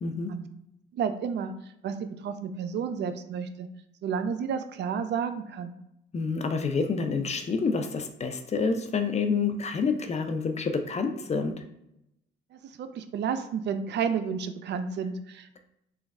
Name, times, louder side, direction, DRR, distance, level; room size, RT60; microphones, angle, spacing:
voice 1, 0.0-0.3 6.1-11.6, left 4 dB, 35° left, 6 dB, 0.5 m, -28 dB
voice 2, 0.9-1.5 1.8-3.7 4.0-5.8 12.5-15.6, right 6 dB, 60° right, 9 dB, 0.4 m, -31 dB
3.1 x 2.3 x 3.5 m, 0.82 s
cardioid pair, 90°, 20 cm